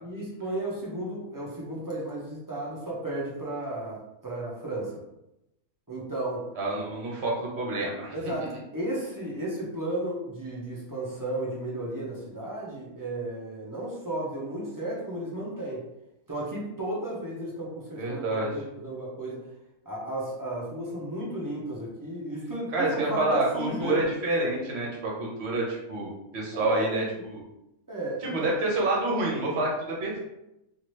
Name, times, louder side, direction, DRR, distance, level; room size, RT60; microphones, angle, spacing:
voice 1, 0.0-4.0 4.2-4.9 5.9-6.5 8.1-15.8 16.3-19.4 19.9-24.0 26.5-27.2 27.9-28.5, right 1 dB, 25° right, -6 dB, 0.5 m, -33 dB
voice 2, 6.6-8.1 18.0-18.5 22.7-27.4 28.2-30.2, right 2 dB, 55° right, -2 dB, 1.1 m, -28 dB
2.8 x 2.5 x 3.1 m, 0.88 s
omnidirectional pair, 1.4 m